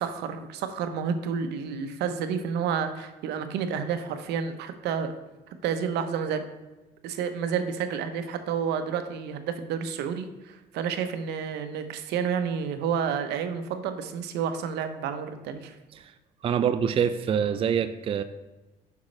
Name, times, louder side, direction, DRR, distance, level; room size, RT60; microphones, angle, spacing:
voice 1, 0.0-5.1 5.6-6.4 7.0-15.7, right 7 dB, 80° right, 9 dB, 0.8 m, -30 dB
voice 2, 16.4-18.2, right 8 dB, 35° right, 10 dB, 0.4 m, -25 dB
8.3 x 6.0 x 3.2 m, 1.1 s
cardioid pair, 110°, 17 cm